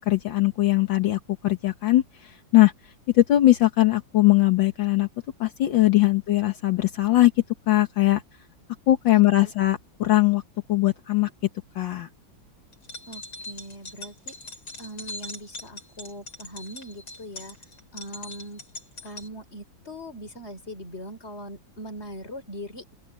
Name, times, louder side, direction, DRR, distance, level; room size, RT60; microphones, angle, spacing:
voice 1, 0.0-2.7 3.1-5.1 5.4-7.3 7.7-8.2 8.9-10.4 10.7-11.3 11.8-12.1, left 16 dB, 70° left, 1.9 m, -20 dB
voice 2, 9.1-9.5 13.1-14.3 14.8-17.6 17.9-18.6 19.0-22.8, equal, 30° left, 4.5 m, -40 dB
sound 1, 12.7-19.3, left 2 dB, 90° left, 7.4 m, -41 dB
open air
omnidirectional pair, 2.1 m